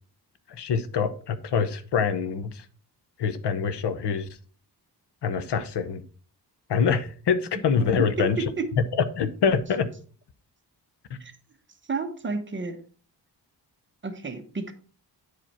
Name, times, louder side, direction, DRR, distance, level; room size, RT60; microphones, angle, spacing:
voice 1, 0.5-2.6 3.2-4.3 5.2-6.0 6.7-8.4 9.2-9.9 11.1-11.2, left 6 dB, 80° left, 12 dB, 0.9 m, -25 dB
voice 2, 8.2-8.7 11.2-11.3 11.9-12.8 14.0-14.7, right 3 dB, 30° right, 5 dB, 1.1 m, -30 dB
9.5 x 4.9 x 4.3 m, 0.41 s
wide cardioid pair, 160°, 40 cm